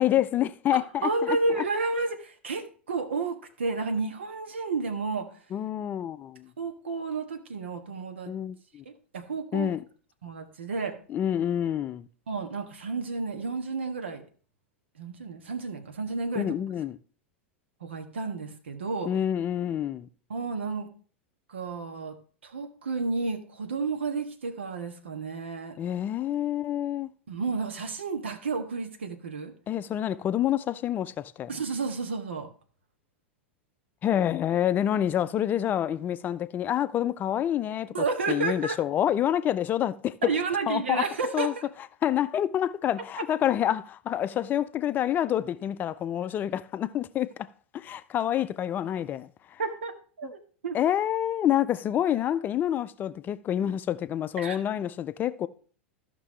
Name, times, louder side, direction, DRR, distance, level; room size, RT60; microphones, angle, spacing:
voice 1, 0.0-1.6 5.5-6.5 8.3-8.8 9.5-9.8 11.1-12.1 16.3-17.0 19.1-20.1 25.8-27.1 29.7-31.5 34.0-40.3 40.7-41.1 41.3-41.5 42.0-47.5 47.7-49.3 50.7-55.5, left 11 dB, 30° left, 0.5 m, -27 dB
voice 2, 0.7-5.3 6.6-8.3 8.8-9.7 10.2-11.0 12.3-14.2 15.0-16.5 17.8-19.1 20.3-20.9 21.5-22.2 22.4-25.8 27.3-29.5 31.5-32.5 37.9-38.8 40.2-41.7 49.6-49.9 50.2-50.8 54.4-54.6, right 4 dB, 70° right, 1.4 m, -31 dB
14.0 x 5.9 x 3.2 m
figure-of-eight pair, 85°, 6 cm